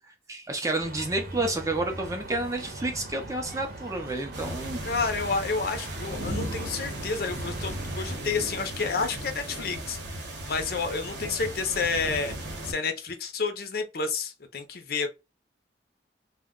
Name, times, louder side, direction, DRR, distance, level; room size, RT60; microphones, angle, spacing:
voice 1, 0.3-4.8, right 2 dB, 20° right, 0.5 m, -30 dB
sound 1, 0.8-8.2, right 2 dB, 55° right, 0.8 m, -40 dB
sound 2, 4.3-12.7, right 1 dB, 85° right, 0.9 m, -36 dB
voice 2, 4.8-10.0 10.5-12.3 12.6-15.1, left 4 dB, 55° left, 0.5 m, -30 dB
2.1 x 2.1 x 3.6 m
head